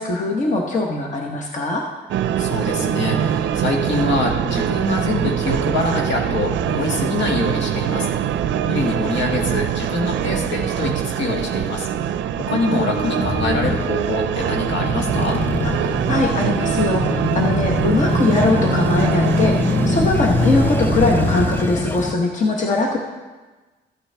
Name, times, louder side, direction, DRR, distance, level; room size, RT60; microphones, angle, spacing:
voice 1, 0.0-1.9 15.6-23.0, left 3 dB, 40° left, 0 dB, 1.1 m, -21 dB
sound 1, 2.1-21.6, right 10 dB, 80° right, 0.4 m, -23 dB
voice 2, 2.4-8.1 8.7-11.9 12.4-15.4, left 2 dB, 75° left, 0 dB, 1.7 m, -24 dB
Male speech man speaking / Motorcycle / Idling, 13.2-22.1, left 3 dB, 10° left, 0.4 m, -23 dB
14.0 x 8.5 x 3.4 m, 1.3 s
cardioid pair, 145°, 19 cm